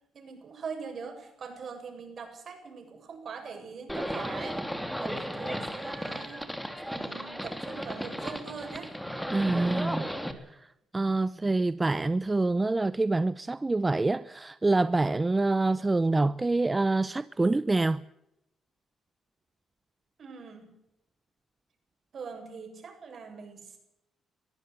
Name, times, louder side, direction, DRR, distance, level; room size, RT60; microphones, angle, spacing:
voice 1, 0.1-4.6 5.0-6.4 6.9-8.9 20.2-20.7 22.1-23.8, right 5 dB, 50° right, 7.7 m, -42 dB
Livestock farm animals working animals, 3.9-10.3, equal, ahead, 3.1 m, -35 dB
voice 2, 9.3-10.1 10.9-18.0, right 2 dB, 20° right, 0.7 m, -26 dB
22.5 x 14.5 x 8.2 m
cardioid pair, 90°, 0 cm